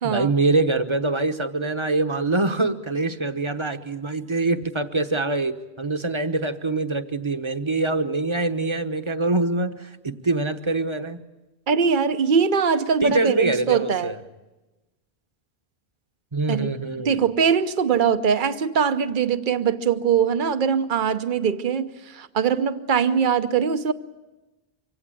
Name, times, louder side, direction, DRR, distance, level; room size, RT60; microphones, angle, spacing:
voice 1, 0.0-11.2 13.0-14.2 16.3-17.2, right 2 dB, 30° right, 1.1 m, -24 dB
voice 2, 11.7-14.1 16.5-16.7 17.0-23.9, right 6 dB, 55° right, 1.0 m, -22 dB
24.5 x 17.0 x 9.1 m
omnidirectional pair, 1.1 m